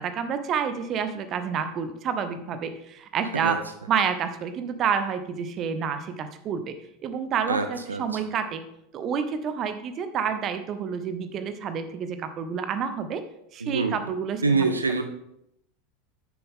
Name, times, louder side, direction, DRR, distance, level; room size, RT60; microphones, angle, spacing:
voice 1, 0.0-3.6 3.9-6.7 7.0-8.6 8.9-13.2 13.5-14.7, right 7 dB, 35° right, 10 dB, 0.8 m, -29 dB
voice 2, 7.5-8.2 13.6-14.1 14.4-15.0, right 4 dB, 80° right, 8 dB, 0.6 m, -25 dB
9.4 x 6.9 x 3.7 m, 0.77 s
figure-of-eight pair, 80°, 0 cm